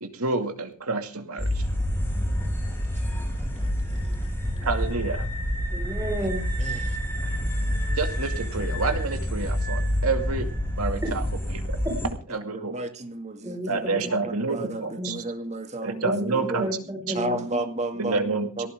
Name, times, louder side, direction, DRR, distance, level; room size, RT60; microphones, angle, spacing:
voice 1, 0.0-1.6 4.6-5.3 8.0-10.5 10.8-11.2 11.6-11.8 12.3-12.8 13.7-15.2 15.8-16.7 18.0-18.7, right 3 dB, 85° right, 2.3 m, -28 dB
sound 1, 1.4-12.1, equal, 10° left, 5.4 m, -28 dB
voice 2, 5.7-6.5 11.0-11.1 12.0-12.1 13.4-14.0 14.6-15.1 16.0-17.4, equal, 15° right, 4.9 m, -32 dB
voice 3, 6.6-7.0 12.5-13.9 14.2-16.7 17.2-18.3 18.6-18.7, right 2 dB, 35° right, 2.1 m, -32 dB
18.0 x 14.5 x 3.6 m
head